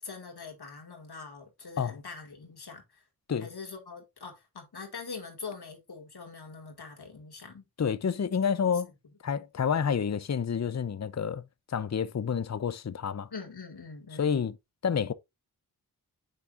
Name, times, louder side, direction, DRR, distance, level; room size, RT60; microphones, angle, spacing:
voice 1, 0.0-3.1 3.4-7.7 8.7-8.8 13.3-14.4, left 4 dB, 80° left, 2.2 m, -43 dB
voice 2, 7.8-8.9 9.2-13.3 14.1-14.5 14.8-15.1, left 7 dB, 45° left, 0.6 m, -29 dB
7.6 x 6.8 x 2.5 m
cardioid pair, 40°, 38 cm